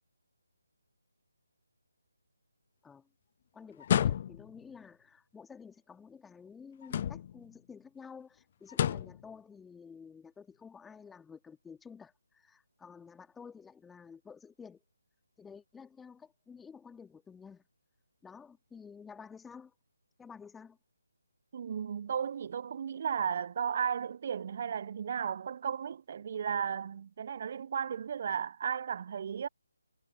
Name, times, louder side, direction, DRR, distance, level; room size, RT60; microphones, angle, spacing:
voice 1, 3.5-14.8 15.4-17.6 18.2-19.7 20.2-20.8, left 6 dB, 5° left, 2.4 m, -51 dB
sound 1, 3.8-4.6 6.8-7.5 8.7-9.2, left 9 dB, 35° left, 0.6 m, -30 dB
voice 2, 21.5-29.5, right 7 dB, 40° right, 0.8 m, -34 dB
figure-of-eight pair, 150°, 0 cm